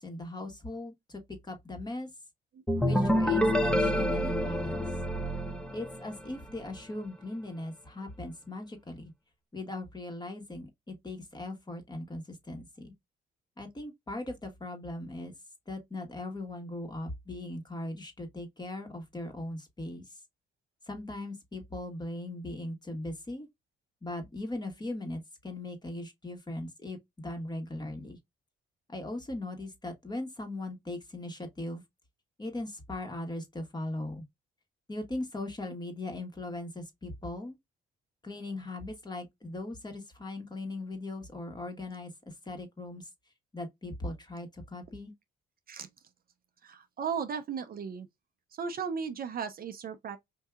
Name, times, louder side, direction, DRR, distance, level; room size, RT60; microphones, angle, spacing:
voice 1, 0.0-2.1 2.8-4.9 5.7-9.1 9.5-12.9 13.6-15.3 15.7-20.1 20.9-23.5 24.0-28.2 28.9-31.8 32.4-34.2 34.9-37.6 38.2-42.1 42.4-43.1 43.5-45.1, left 2 dB, 20° left, 1.4 m, -39 dB
sound 1, 2.7-6.4, equal, 5° left, 0.7 m, -27 dB
voice 2, 46.6-48.1 48.5-50.2, right 6 dB, 50° right, 0.6 m, -36 dB
4.5 x 2.7 x 2.4 m
cardioid pair, 90°, 20 cm